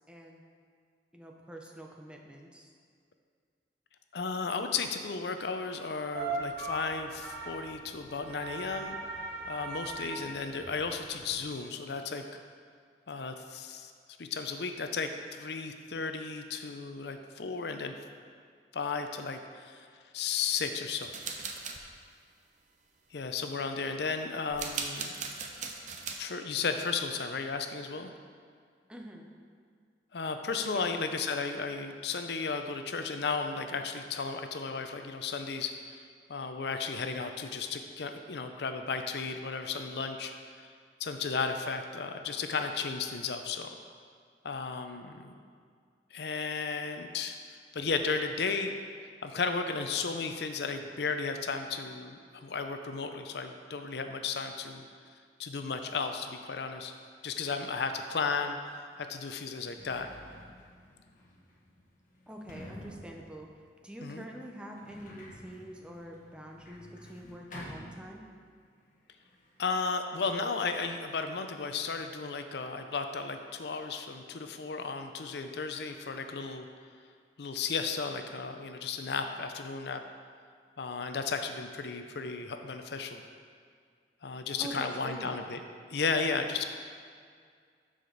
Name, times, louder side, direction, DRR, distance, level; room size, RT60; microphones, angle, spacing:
voice 1, 0.1-0.4 1.1-2.7 28.9-29.3 30.7-30.9 62.3-63.5 63.8-68.3 84.6-85.4, right 1 dB, 5° right, 1 dB, 0.7 m, -45 dB
voice 2, 4.1-9.0 9.5-12.2 13.1-13.9 14.2-18.0 18.7-19.9 20.1-21.1 23.1-25.1 25.6-25.7 26.2-28.1 30.1-36.0 36.3-40.3 40.6-40.7 41.0-43.7 44.4-45.4 46.1-48.7 49.2-54.9 55.4-56.9 57.2-60.1 64.0-64.2 69.6-76.7 77.4-80.0 80.8-83.2 84.2-85.6 85.9-86.7, left 4 dB, 65° left, 7 dB, 0.5 m, -34 dB
sound 1, 6.1-11.4, right 3 dB, 60° right, 1.1 m, -39 dB
sound 2, 21.0-21.8 24.5-26.2, right 5 dB, 45° right, 0.7 m, -38 dB
Sliding door, 58.7-58.8 59.4-68.6 68.9-69.7, left 1 dB, 50° left, 1.2 m, -50 dB
12.0 x 4.9 x 4.0 m, 2.1 s
head